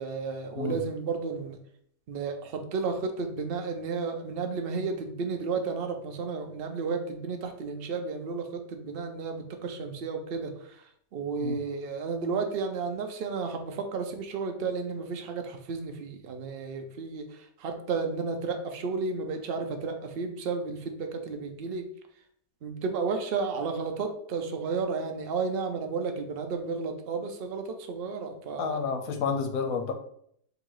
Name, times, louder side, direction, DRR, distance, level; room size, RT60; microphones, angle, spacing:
voice 1, 0.0-1.6 2.1-21.8 22.6-28.9, right 4 dB, 65° right, 5 dB, 0.5 m, -32 dB
voice 2, 28.6-29.9, left 5 dB, 70° left, 5 dB, 1.0 m, -30 dB
3.9 x 2.7 x 4.6 m, 0.67 s
omnidirectional pair, 1.7 m